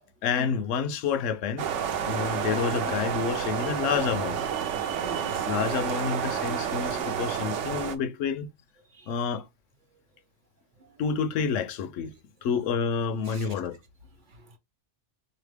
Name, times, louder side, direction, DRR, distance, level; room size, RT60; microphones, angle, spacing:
voice 1, 0.2-1.7 2.1-4.4 5.4-8.5 9.1-9.5 11.0-12.1 12.4-13.8, left 6 dB, 80° left, 0.9 m, -29 dB
sound 1, 1.6-8.0, right 8 dB, 75° right, 0.9 m, -30 dB
voice 2, 4.5-5.5 8.9-9.1 10.8-10.9 13.2-13.5 14.3-14.6, right 5 dB, 45° right, 0.9 m, -43 dB
4.0 x 2.9 x 3.3 m
omnidirectional pair, 1.3 m